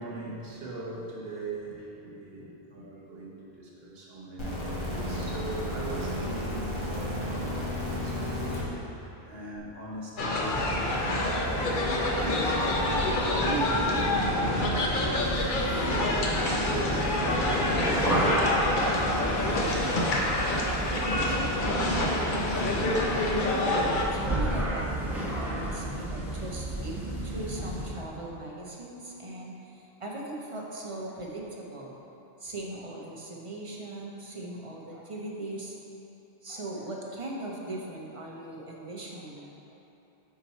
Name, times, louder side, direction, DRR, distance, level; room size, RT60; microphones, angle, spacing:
voice 1, 0.0-15.6 16.1-19.5 19.8-20.5 20.8-22.2, right 1 dB, 70° right, -4 dB, 1.2 m, -40 dB
sound 1, 4.4-8.6 9.6-9.7, left 1 dB, 30° left, 1.0 m, -32 dB
sound 2, 10.2-24.0, left 2 dB, 60° left, 0.8 m, -27 dB
sound 3, 10.2-28.0, right 1 dB, ahead, 0.9 m, -32 dB
voice 2, 23.3-31.9 32.4-35.8 36.4-39.5, right 1 dB, 35° right, -2 dB, 0.7 m, -39 dB
5.7 x 4.7 x 4.1 m, 2.9 s
omnidirectional pair, 1.0 m